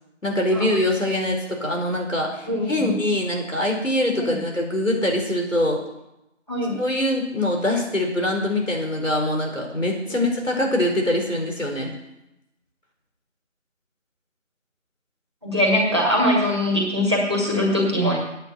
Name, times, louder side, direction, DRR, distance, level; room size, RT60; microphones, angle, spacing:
voice 1, 0.2-5.8 6.8-11.9, left 1 dB, 90° left, 0 dB, 5.0 m, -23 dB
voice 2, 2.5-2.9 4.1-4.4 6.5-6.8 10.1-10.3 15.4-18.2, equal, 20° right, -2 dB, 1.9 m, -22 dB
9.6 x 9.0 x 7.8 m, 0.89 s
figure-of-eight pair, 175°, 37 cm